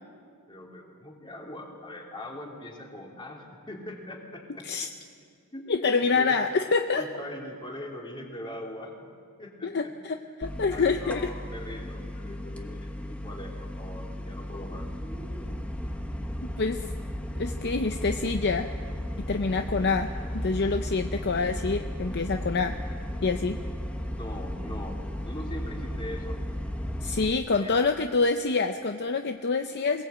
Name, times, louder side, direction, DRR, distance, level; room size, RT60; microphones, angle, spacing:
voice 1, 0.5-4.7 5.5-5.8 6.2-6.4 7.0-9.1 9.4-9.9 10.7-14.9 24.1-26.4 27.5-27.9, left 1 dB, 20° left, 0 dB, 3.0 m, -41 dB
voice 2, 5.7-7.0 9.6-11.3 16.4-16.9 17.4-18.7 19.3-22.8 23.2-23.6 27.0-30.0, left 4 dB, 50° left, 7 dB, 0.7 m, -26 dB
sound 1, 10.4-27.3, equal, 5° left, 1.1 m, -35 dB
21.0 x 18.0 x 8.2 m, 2.1 s
head